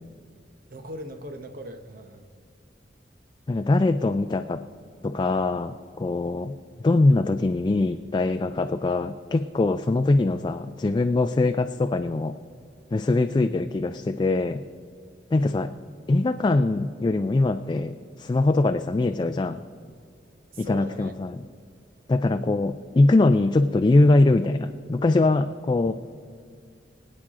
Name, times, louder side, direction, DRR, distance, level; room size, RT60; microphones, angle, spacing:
voice 1, 0.7-2.3 13.3-13.5 15.4-15.7 20.5-21.1, right 1 dB, 50° right, 7 dB, 1.0 m, -40 dB
voice 2, 3.5-4.6 5.0-6.6 6.8-12.4 12.9-14.6 15.3-15.7 16.1-19.6 20.6-21.4 22.1-25.9, left 2 dB, 25° left, 8 dB, 0.3 m, -22 dB
24.5 x 8.8 x 3.7 m, 2.2 s
head